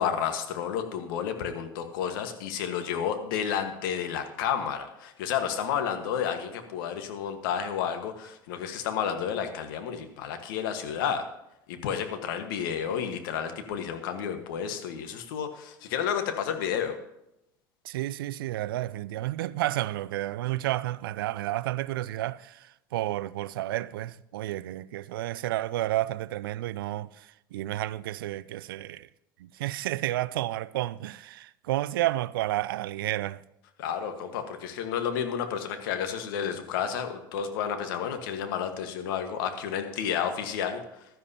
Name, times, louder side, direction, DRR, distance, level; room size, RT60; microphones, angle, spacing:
voice 1, 0.0-11.2 11.7-17.0 33.8-40.8, left 8 dB, 75° left, 1.4 m, -31 dB
voice 2, 17.8-29.1 29.4-33.4, right 15 dB, 80° right, 0.4 m, -31 dB
15.5 x 12.5 x 2.9 m
hypercardioid pair, 80°, 12 cm